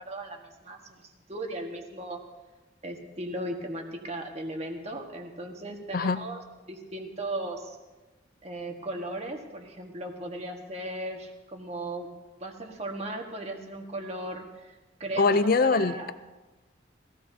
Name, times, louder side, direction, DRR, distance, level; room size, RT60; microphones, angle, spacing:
voice 1, 0.0-2.2 2.8-6.4 6.7-7.8 8.4-12.1 12.4-16.1, right 1 dB, 35° right, 2 dB, 1.5 m, -37 dB
voice 2, 15.2-16.1, left 4 dB, 50° left, 13 dB, 0.5 m, -23 dB
20.5 x 15.5 x 2.7 m, 1.1 s
head